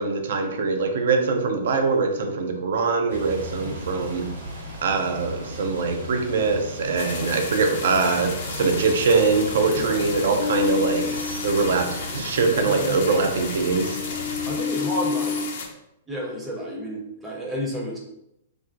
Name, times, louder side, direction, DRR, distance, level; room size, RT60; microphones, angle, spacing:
voice 1, 0.0-4.3 4.8-11.1 11.4-14.0, right 4 dB, 60° right, 4 dB, 0.4 m, -23 dB
sound 1, 3.1-14.6, right 1 dB, 75° right, 0.8 m, -37 dB
voice 2, 3.6-4.1 9.7-10.0 12.6-13.0 14.5-15.3 16.1-18.0, equal, 10° right, -3 dB, 0.6 m, -31 dB
sound 2, 6.9-15.7, left 4 dB, 55° left, 0.5 m, -34 dB
sound 3, 10.4-12.4 12.9-15.4, left 6 dB, 90° left, 0.8 m, -30 dB
2.5 x 2.1 x 2.4 m, 0.83 s
figure-of-eight pair, 110°, 0 cm